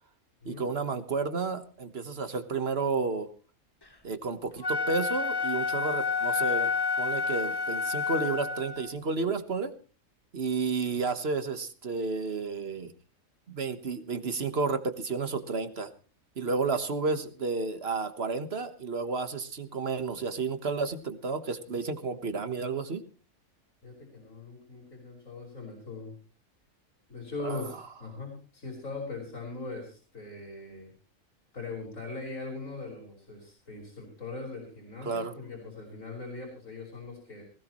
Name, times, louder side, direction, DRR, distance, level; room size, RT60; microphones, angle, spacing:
voice 1, 0.5-3.3 4.0-9.7 10.3-12.9 13.5-15.9 16.4-23.0 27.4-27.6 35.0-35.3, right 4 dB, 50° right, 9 dB, 1.6 m, -31 dB
Wind instrument woodwind instrument, 4.5-8.9, left 4 dB, 20° left, 1.2 m, -29 dB
voice 2, 23.8-26.1 27.1-30.9 31.5-37.4, left 3 dB, 75° left, -2 dB, 5.5 m, -40 dB
19.5 x 17.5 x 3.1 m, 0.36 s
omnidirectional pair, 1.4 m